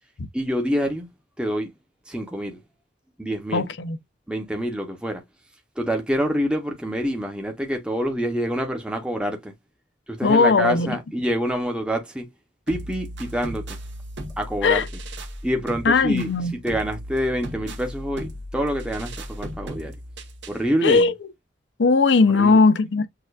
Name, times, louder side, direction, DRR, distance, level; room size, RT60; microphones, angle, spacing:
voice 1, 0.3-1.1 1.4-1.7 2.1-2.6 3.2-3.7 4.3-5.2 5.8-9.5 10.1-12.3 12.7-13.8 14.4-14.8 15.4-16.3 16.6-20.0 20.5-21.1 22.4-22.6, equal, 5° right, 0.8 m, -26 dB
voice 2, 3.5-4.0 10.2-11.0 14.6-14.9 15.8-16.6 20.8-21.1 21.8-23.1, left 4 dB, 70° left, 0.6 m, -18 dB
sound 1, 12.7-20.7, equal, 70° right, 1.2 m, -36 dB
6.6 x 2.4 x 2.4 m
head